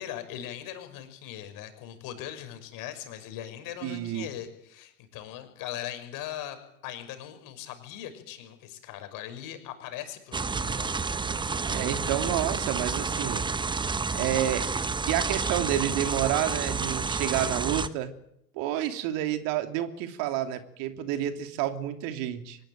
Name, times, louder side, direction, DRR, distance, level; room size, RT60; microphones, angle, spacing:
voice 1, 0.0-6.6 6.8-10.9, left 11 dB, 45° left, 9 dB, 5.7 m, -40 dB
voice 2, 3.8-4.3 11.6-13.4 14.1-14.7 15.1-18.1 18.6-22.6, right 11 dB, 45° right, 7 dB, 2.9 m, -29 dB
sound 1, 10.3-17.9, right 4 dB, 10° right, 1.1 m, -30 dB
25.0 x 19.0 x 9.0 m, 0.76 s
figure-of-eight pair, 95°, 46 cm